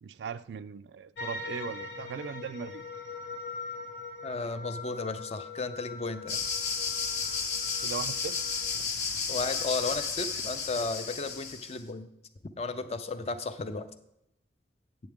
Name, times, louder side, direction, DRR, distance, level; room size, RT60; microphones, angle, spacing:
voice 1, 0.0-2.9 7.8-8.4 8.8-8.9, right 6 dB, 70° right, 14 dB, 0.3 m, -38 dB
sound 1, 1.2-8.8, left 3 dB, 90° left, 1.3 m, -42 dB
voice 2, 4.2-6.5 9.3-12.1 12.6-13.9, left 3 dB, 35° left, 11 dB, 0.5 m, -34 dB
sound 2, 6.3-11.8, left 5 dB, 65° left, 0.9 m, -33 dB
8.6 x 7.8 x 3.5 m, 0.82 s
head